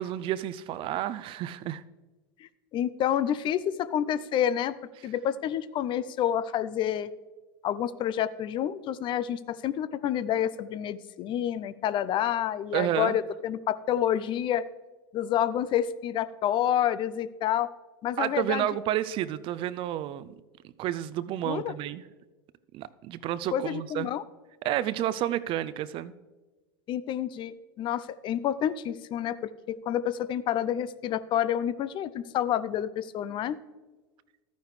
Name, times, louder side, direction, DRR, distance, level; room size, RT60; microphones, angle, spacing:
voice 1, 0.0-1.8 12.7-13.2 18.2-20.3 20.6-22.1 22.7-24.1 24.6-26.1, right 12 dB, 45° right, 16 dB, 0.5 m, -30 dB
voice 2, 2.7-4.7 5.0-7.1 7.6-14.7 15.1-17.7 18.0-18.7 21.5-21.7 23.5-24.2 26.9-29.3 29.7-33.6, left 10 dB, 40° left, 15 dB, 0.5 m, -28 dB
13.0 x 9.4 x 3.2 m, 1.2 s
hypercardioid pair, 95°, 12 cm